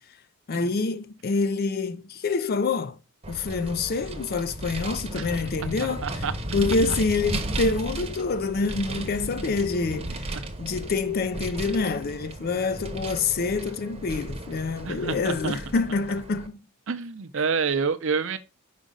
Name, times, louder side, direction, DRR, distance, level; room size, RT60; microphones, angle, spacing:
voice 1, 0.5-3.0 3.3-6.0 6.5-16.6, left 4 dB, 45° left, 0.4 m, -27 dB
Vehicle, 3.2-16.5, right 1 dB, 25° right, 0.9 m, -35 dB
voice 2, 5.8-6.3 10.3-10.4 14.8-15.6 16.9-18.4, right 5 dB, 60° right, 0.6 m, -28 dB
5.2 x 5.0 x 3.7 m
head